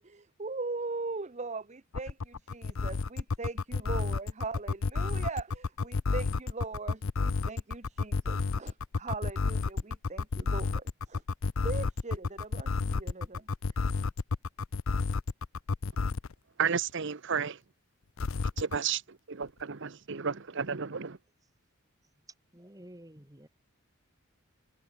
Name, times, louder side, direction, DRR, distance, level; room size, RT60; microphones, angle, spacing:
voice 1, 0.0-11.2 11.6-13.5, right 3 dB, 30° right, 0.8 m, -40 dB
sound 1, 1.9-16.3 18.2-18.8, left 4 dB, 65° left, 0.6 m, -30 dB
voice 2, 16.6-17.6 18.6-19.0 19.3-21.2, right 6 dB, 55° right, 0.9 m, -32 dB
voice 3, 22.5-23.5, right 1 dB, 15° right, 2.5 m, -51 dB
head